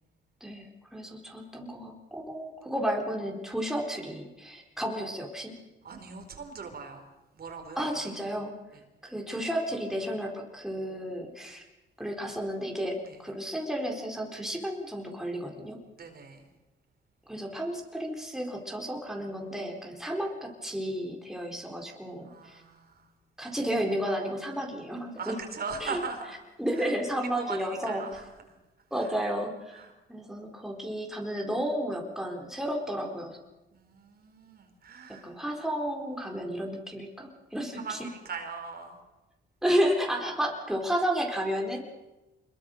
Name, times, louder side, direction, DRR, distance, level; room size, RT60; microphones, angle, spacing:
voice 1, 0.4-5.5 7.8-8.5 9.0-11.6 12.0-15.8 17.3-22.6 23.4-25.3 25.8-26.0 26.6-28.0 28.9-29.8 30.1-33.4 35.1-38.1 39.6-41.8, equal, ahead, 1 dB, 4.2 m, -32 dB
voice 2, 5.8-7.1 7.3-8.2 8.7-8.8 13.0-13.2 16.0-16.4 22.2-23.1 25.2-26.4 26.8-28.6 29.0-29.1 29.7-29.9 30.5-30.8 33.7-35.3 37.7-39.0, right 5 dB, 50° right, 5 dB, 4.4 m, -40 dB
25.0 x 22.0 x 6.5 m, 1.1 s
cardioid pair, 90°, 20 cm